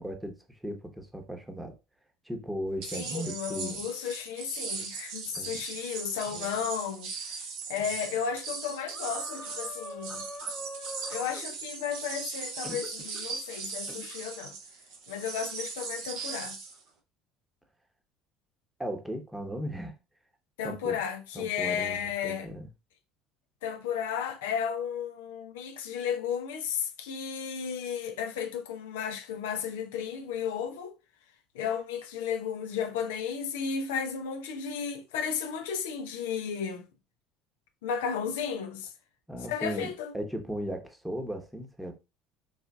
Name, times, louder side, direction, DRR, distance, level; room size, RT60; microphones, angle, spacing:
voice 1, 0.0-1.8 2.2-3.8 5.3-5.6 6.3-6.5 18.8-20.0 20.6-21.0 21.3-22.7 39.3-41.9, equal, 5° right, 1.0 m, -37 dB
sound 1, 2.8-16.8, right 5 dB, 70° right, 0.9 m, -39 dB
voice 2, 2.9-7.4 7.7-10.3 11.1-14.6 15.1-16.6 20.6-22.5 23.6-30.9 31.5-36.9 37.8-38.9 39.5-40.1, left 7 dB, 80° left, 0.4 m, -34 dB
sound 2, 8.9-11.5 12.6-13.3 13.9-14.1, left 1 dB, 15° left, 0.7 m, -43 dB
4.0 x 2.5 x 2.3 m
hypercardioid pair, 70°, 0 cm